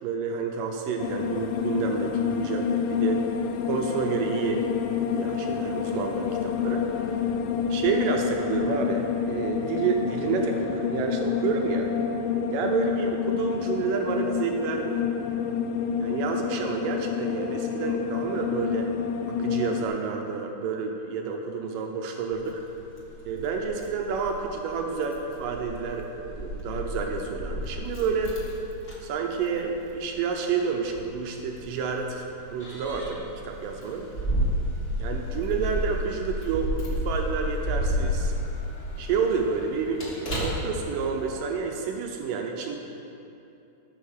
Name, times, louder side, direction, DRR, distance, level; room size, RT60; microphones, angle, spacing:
voice 1, 0.0-3.2 3.7-4.6 5.1-6.9 7.7-11.9 12.5-15.1 16.0-18.9 19.3-22.6 23.2-28.4 29.0-32.2 32.5-34.0 35.0-38.3 39.0-42.8, right 5 dB, 80° right, 2 dB, 2.0 m, -29 dB
sound 1, 1.0-19.8, left 7 dB, 90° left, 2.0 m, -28 dB
Keys jangling, 22.3-41.4, equal, 40° left, 0.8 m, -32 dB
14.0 x 6.5 x 6.6 m, 2.8 s
omnidirectional pair, 4.8 m